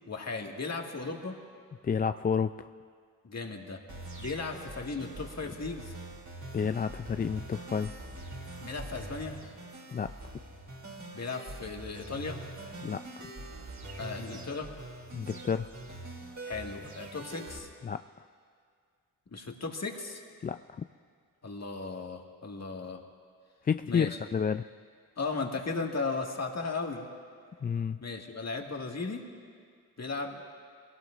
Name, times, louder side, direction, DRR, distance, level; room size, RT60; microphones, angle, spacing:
voice 1, 0.1-1.4 3.2-3.8 4.2-5.9 8.6-9.4 11.1-12.4 13.9-14.7 16.4-17.7 19.3-20.2 21.4-23.0 23.9-24.2 25.2-27.1 28.0-29.3 30.0-30.4, left 4 dB, 40° left, 2 dB, 2.0 m, -36 dB
voice 2, 1.8-2.7 6.5-8.0 9.9-10.1 12.8-13.3 15.1-15.7 17.8-18.0 20.4-20.8 23.6-24.6 27.6-28.0, left 6 dB, 25° left, 10 dB, 0.3 m, -30 dB
sound 1, 3.9-17.6, right 2 dB, 45° right, 3.0 m, -44 dB
23.5 x 17.5 x 2.6 m, 2.1 s
supercardioid pair, 40°, 40 cm